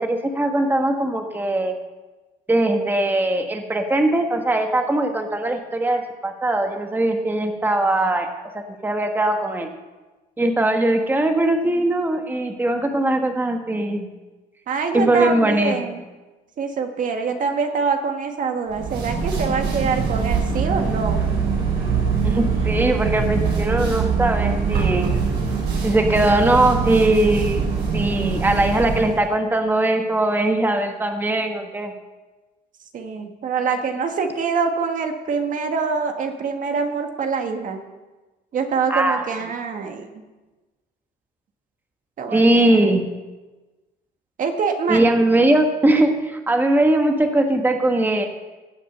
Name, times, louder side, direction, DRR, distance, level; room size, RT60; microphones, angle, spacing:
voice 1, 0.0-1.8 2.5-8.3 8.5-9.7 10.4-14.1 14.9-15.9 22.2-25.2 25.8-27.6 27.9-31.9 38.9-39.2 42.3-43.0 44.9-48.3, right 1 dB, 10° right, 4 dB, 1.3 m, -20 dB
voice 2, 14.7-16.0 16.6-21.2 32.9-37.8 38.5-40.2 42.2-42.9 44.4-45.0, right 5 dB, 50° right, 5 dB, 1.6 m, -25 dB
sound 1, 18.7-29.2, right 5 dB, 80° right, 5.5 m, -23 dB
16.5 x 7.5 x 6.7 m, 1.2 s
cardioid pair, 110°, 17 cm